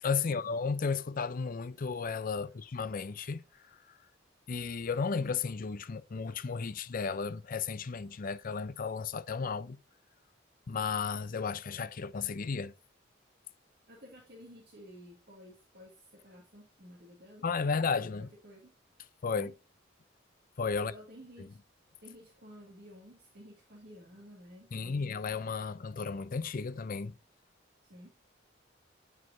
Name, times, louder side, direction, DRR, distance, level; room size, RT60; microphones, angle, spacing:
voice 1, 0.0-3.4 4.5-9.8 10.7-12.7 17.4-18.3 19.2-19.5 20.6-20.9 21.4-21.5 24.7-27.1, left 5 dB, 45° left, 0.5 m, -33 dB
voice 2, 13.9-18.7 19.3-19.5 20.8-21.6 22.0-25.2 27.8-28.1, equal, 55° right, 1.9 m, -53 dB
9.6 x 4.7 x 2.6 m
head